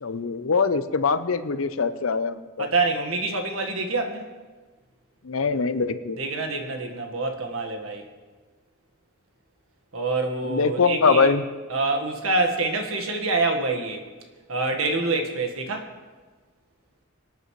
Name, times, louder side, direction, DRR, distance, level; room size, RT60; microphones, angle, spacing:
voice 1, 0.0-2.7 5.2-6.2 10.5-11.4, left 5 dB, 75° left, 11 dB, 0.7 m, -23 dB
voice 2, 2.6-4.2 6.2-8.1 9.9-11.3 11.7-14.0 14.5-15.9, right 3 dB, 80° right, 4 dB, 1.6 m, -26 dB
25.0 x 9.0 x 3.2 m, 1.4 s
head